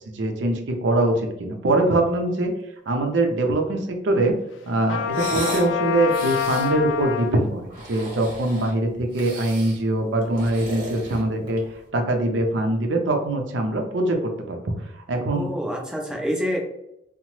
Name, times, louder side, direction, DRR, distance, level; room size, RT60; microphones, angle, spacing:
voice 1, 0.1-2.5 2.9-4.3 4.7-7.6 7.9-11.6 11.9-14.6 15.1-15.5, right 2 dB, 85° right, 4 dB, 0.5 m, -23 dB
Trumpet, 4.9-7.4, left 8 dB, 85° left, 0.3 m, -26 dB
sound 1, 5.1-5.7 6.1-6.7 7.6-8.8 9.1-9.8 10.2-11.7, right 1 dB, 50° right, 0.9 m, -35 dB
voice 2, 15.1-16.6, equal, 5° right, 0 dB, 0.5 m, -27 dB
2.8 x 2.0 x 3.0 m, 0.83 s
head